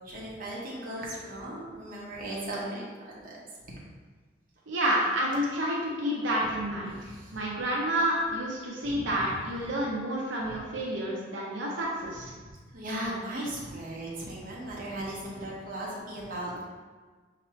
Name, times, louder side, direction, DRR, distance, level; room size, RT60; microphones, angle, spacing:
voice 1, 0.0-3.4 6.9-7.4 8.8-9.3 12.4-16.6, right 1 dB, 50° right, -5 dB, 1.1 m, -37 dB
voice 2, 4.7-7.0 7.3-12.3, equal, 85° right, -4 dB, 0.7 m, -29 dB
5.8 x 3.0 x 3.1 m, 1.4 s
head